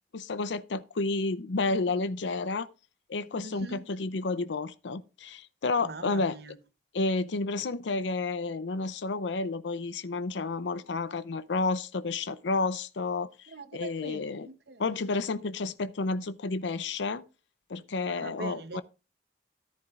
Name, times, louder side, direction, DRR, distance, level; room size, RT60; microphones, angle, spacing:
voice 1, 0.1-2.7 3.1-6.4 6.9-14.5 14.8-17.2 17.7-18.8, left 3 dB, 85° left, 0.6 m, -31 dB
voice 2, 3.3-3.9 5.8-6.6 13.5-14.8 18.1-18.8, right 2 dB, 65° right, 1.0 m, -42 dB
13.5 x 11.0 x 2.4 m
head